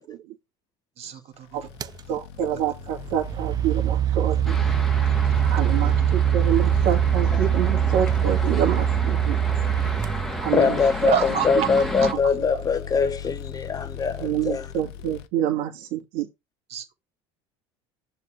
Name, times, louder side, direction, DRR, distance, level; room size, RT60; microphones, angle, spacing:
voice 1, 1.0-1.7 2.1-2.2 2.5-2.6 4.3-4.4 5.1-5.4 5.8-5.9 9.6-9.7 10.8-12.6 13.0-13.1 16.7-16.9, right 8 dB, 50° right, 2.0 m, -30 dB
sound 1, 1.5-15.3, left 9 dB, 85° left, 1.0 m, -38 dB
sound 2, 1.8-2.0 2.9-10.9, right 10 dB, 30° right, 0.5 m, -23 dB
voice 2, 2.1-4.6 5.4-9.4 10.4-10.8 14.2-16.3, right 10 dB, 70° right, 2.4 m, -27 dB
sound 3, 4.5-12.1, left 1 dB, 5° left, 2.1 m, -33 dB
voice 3, 10.5-11.1 11.4-14.7, left 5 dB, 30° left, 0.8 m, -23 dB
6.9 x 4.4 x 5.7 m
supercardioid pair, 105°, 13 cm